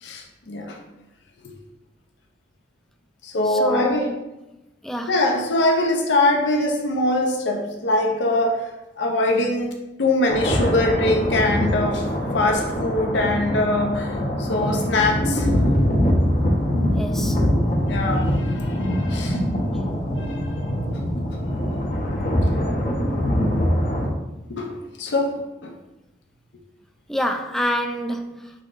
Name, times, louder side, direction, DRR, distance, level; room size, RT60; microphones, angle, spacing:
voice 1, 0.0-0.8 1.4-1.5 3.2-4.0 5.1-8.7 9.0-9.7 10.0-12.1 12.3-15.5 17.8-19.4 20.2-20.5 21.7-21.9 24.5-25.7, left 2 dB, 75° left, 0.6 m, -23 dB
voice 2, 3.4-4.2 4.8-5.2 16.9-17.4 27.1-28.6, equal, ahead, 0.3 m, -27 dB
sound 1, 10.3-24.1, equal, 45° left, 0.8 m, -23 dB
5.7 x 3.7 x 2.5 m
head